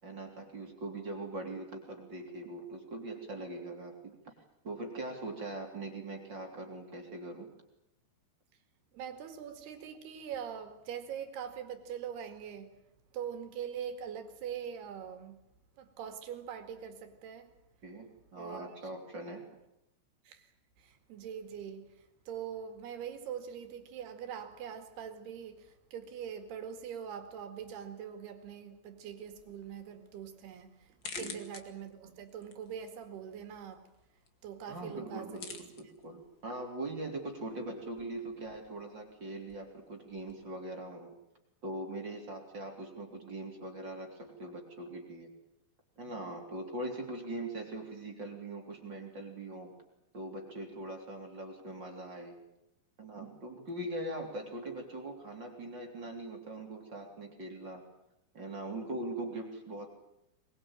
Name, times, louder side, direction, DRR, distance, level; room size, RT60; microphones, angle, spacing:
voice 1, 0.0-3.9 4.2-4.3 4.6-7.5 17.8-19.4 31.1-31.4 34.7-41.1 41.6-45.3 46.0-49.7 50.1-52.4 53.0-57.8 58.3-59.9, right 1 dB, 25° right, 3.7 m, -41 dB
voice 2, 8.9-12.8 13.1-15.4 15.8-17.5 18.4-18.9 20.3-20.5 20.8-33.9 34.4-35.9, right 8 dB, 70° right, 4.0 m, -43 dB
sound 1, 29.2-40.4, left 5 dB, 40° left, 1.7 m, -52 dB
22.5 x 21.5 x 9.0 m
omnidirectional pair, 5.0 m